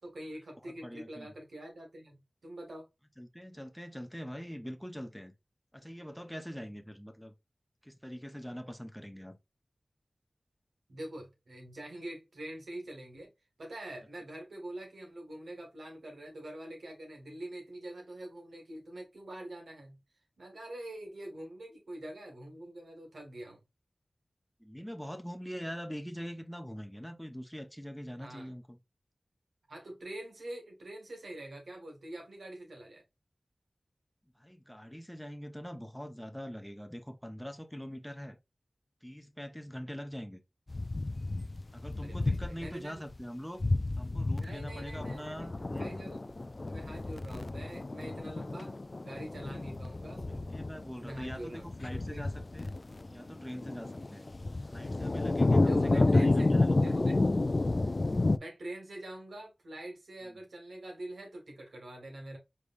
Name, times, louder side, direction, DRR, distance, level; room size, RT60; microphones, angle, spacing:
voice 1, 0.0-2.9 10.9-13.3 13.6-20.0 20.4-23.6 28.2-28.5 29.7-33.0 42.0-43.0 44.4-46.3 46.6-48.7 49.0-50.7 51.0-51.6 51.9-52.2 55.6-57.2 58.4-62.4, right 1 dB, 90° right, 2.1 m, -45 dB
voice 2, 0.8-1.3 3.2-5.3 5.7-7.3 7.8-9.4 24.6-28.8 34.4-38.4 39.0-40.4 41.7-43.7 44.0-45.9 50.5-52.8 53.1-54.3 54.7-57.0 60.2-60.4, equal, ahead, 1.0 m, -43 dB
sound 1, 40.7-42.7 43.1-43.2 43.6-58.4, left 2 dB, 50° left, 0.4 m, -30 dB
4.9 x 3.4 x 2.5 m
wide cardioid pair, 50°, 0 cm